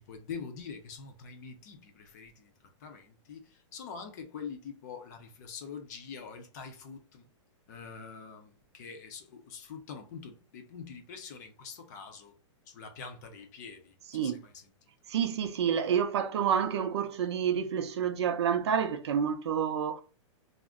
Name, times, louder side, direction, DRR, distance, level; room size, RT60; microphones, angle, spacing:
voice 1, 0.0-2.5 2.8-7.2 7.7-12.3 12.7-14.7, left 6 dB, 35° left, 0.6 m, -45 dB
voice 2, 15.1-20.0, right 8 dB, 60° right, 0.5 m, -29 dB
2.4 x 2.1 x 3.5 m
hypercardioid pair, 170°, 16 cm